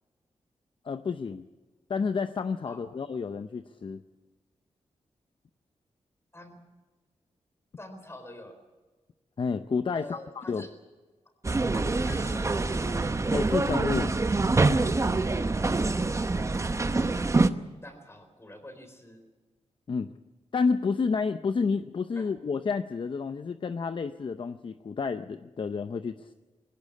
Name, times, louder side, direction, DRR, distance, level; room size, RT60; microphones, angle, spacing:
voice 1, 0.8-1.5 1.9-4.0 9.4-10.6 13.3-14.1 19.9-20.1 20.5-26.3, left 5 dB, 50° left, 10 dB, 0.7 m, -30 dB
voice 2, 6.3-6.6 7.8-8.6 9.9-10.7 11.7-13.1 17.8-19.2 22.2-22.3, left 1 dB, 25° left, 7 dB, 4.1 m, -46 dB
sound 1, 11.4-17.5, right 3 dB, 25° right, 0.9 m, -25 dB
20.5 x 17.0 x 8.5 m, 1.3 s
wide cardioid pair, 110°, 11 cm